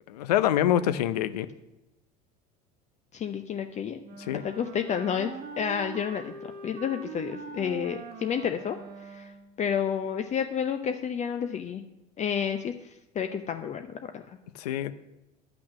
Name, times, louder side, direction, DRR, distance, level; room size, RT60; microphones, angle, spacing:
voice 1, 0.1-1.5 4.2-4.4 14.5-14.9, left 11 dB, 80° left, 14 dB, 0.6 m, -25 dB
voice 2, 3.1-4.0 4.3-6.3 6.6-8.8 9.1-9.3 9.6-11.8 12.2-12.7 13.1-14.4, left 8 dB, 35° left, 7 dB, 0.7 m, -30 dB
Wind instrument woodwind instrument, 4.0-9.6, right 4 dB, 50° right, 1.1 m, -42 dB
10.5 x 6.1 x 6.0 m, 0.94 s
hypercardioid pair, 80°, 20 cm